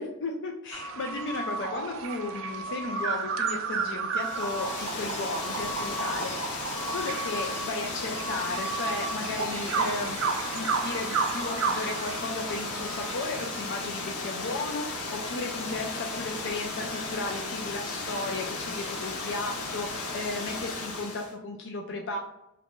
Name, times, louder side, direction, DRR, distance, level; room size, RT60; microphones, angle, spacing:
voice 1, 0.0-22.2, left 3 dB, 55° left, 1 dB, 0.4 m, -35 dB
sound 1, 0.7-13.5, right 4 dB, 60° right, 0.4 m, -33 dB
Water, 4.1-21.3, left 3 dB, 75° left, 0.8 m, -35 dB
2.9 x 2.5 x 3.6 m, 0.86 s
head